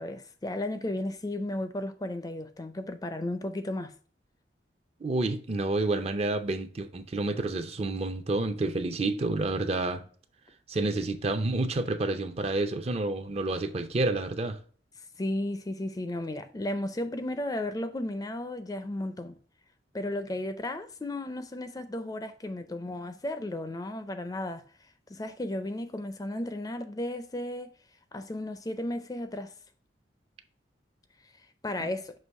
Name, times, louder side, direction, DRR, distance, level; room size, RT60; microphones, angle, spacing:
voice 1, 0.0-3.9 15.2-19.4 19.9-24.6 25.1-27.7 28.1-29.5 31.6-32.1, left 1 dB, 20° left, 0.4 m, -34 dB
voice 2, 5.0-10.0 10.7-14.6 31.8-31.9, right 2 dB, 35° right, 0.5 m, -29 dB
6.2 x 2.9 x 5.3 m
head